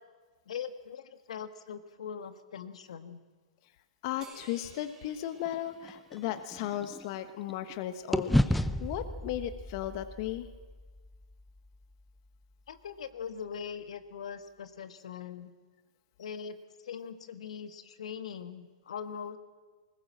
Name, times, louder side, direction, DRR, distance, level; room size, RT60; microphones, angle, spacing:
voice 1, 0.5-3.2 12.7-15.5 16.2-19.4, left 7 dB, 75° left, 11 dB, 1.5 m, -41 dB
voice 2, 4.0-10.5, left 12 dB, 45° left, 10 dB, 1.2 m, -36 dB
sound 1, 4.2-6.9, right 4 dB, 20° right, 4.8 m, -57 dB
sound 2, 5.4-7.7 8.1-12.4, left 1 dB, ahead, 0.6 m, -33 dB
20.5 x 19.5 x 7.6 m, 1.4 s
hypercardioid pair, 140°, 3 cm